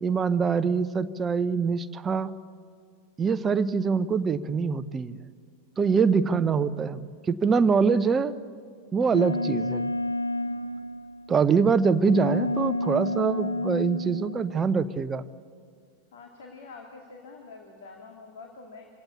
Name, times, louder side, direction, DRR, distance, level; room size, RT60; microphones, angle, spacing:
voice 1, 0.0-2.3 3.2-5.3 5.8-7.0 7.3-8.3 8.9-9.9 11.3-15.2, right 5 dB, 20° right, 12 dB, 0.8 m, -24 dB
sound 1, 9.1-11.4 12.0-14.7, left 1 dB, 85° left, 0.5 m, -30 dB
voice 2, 16.1-18.9, left 4 dB, 60° left, 2 dB, 2.5 m, -46 dB
27.0 x 17.0 x 8.4 m, 2.1 s
figure-of-eight pair, 90°, 0 cm